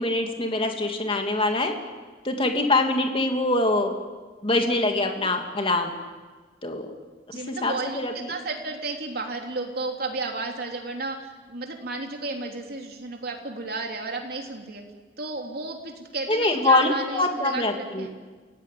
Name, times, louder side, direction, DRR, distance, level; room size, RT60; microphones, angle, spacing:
voice 1, 0.0-1.7 2.2-4.0 4.4-5.9 6.6-6.9 7.5-8.3 16.3-18.1, left 2 dB, 30° left, 4 dB, 2.7 m, -24 dB
voice 2, 7.3-14.8 15.2-18.1, right 3 dB, 60° right, 2 dB, 3.4 m, -33 dB
29.0 x 16.5 x 9.4 m, 1.4 s
head